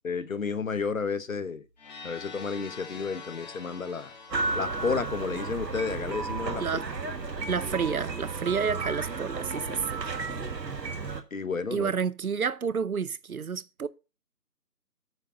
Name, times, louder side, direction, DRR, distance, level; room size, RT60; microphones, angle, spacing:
voice 1, 0.0-1.7 2.0-4.1 4.5-6.6 7.5-7.6 11.3-11.9, left 5 dB, 55° left, 0.8 m, -31 dB
sound 1, 1.8-6.6, left 5 dB, 25° left, 2.2 m, -46 dB
westside loud bikers sirens, 4.3-11.2, right 3 dB, 80° right, 1.7 m, -33 dB
voice 2, 7.5-10.1 11.7-13.9, right 6 dB, 60° right, 0.7 m, -30 dB
9.2 x 5.1 x 6.2 m
figure-of-eight pair, 160°, 50 cm